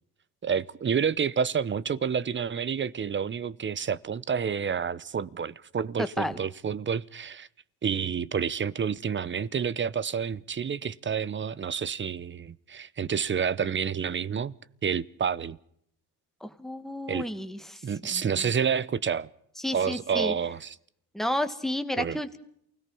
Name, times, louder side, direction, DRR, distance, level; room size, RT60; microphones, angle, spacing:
voice 1, 0.4-7.5 7.8-14.5 14.8-15.6 17.1-17.2 17.8-19.3 19.7-20.8 22.0-22.2, right 7 dB, 25° right, 0.7 m, -29 dB
voice 2, 6.0-6.4 16.4-17.8 18.1-18.5 19.6-20.3 21.1-22.4, left 1 dB, ahead, 1.7 m, -32 dB
28.5 x 17.5 x 5.4 m
cardioid pair, 115°, 43 cm